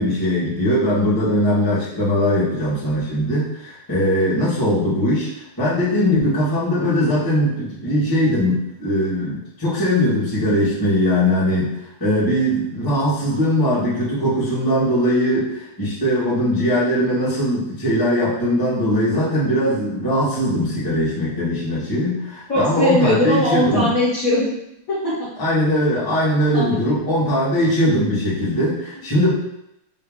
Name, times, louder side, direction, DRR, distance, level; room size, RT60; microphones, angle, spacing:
voice 1, 0.0-5.3 5.6-11.7 12.0-23.9 25.4-29.3, equal, 15° left, -10 dB, 1.1 m, -20 dB
voice 2, 22.5-24.5 24.9-25.3 26.5-26.9, equal, 50° left, -9 dB, 1.2 m, -20 dB
3.9 x 2.8 x 3.6 m, 0.85 s
omnidirectional pair, 2.3 m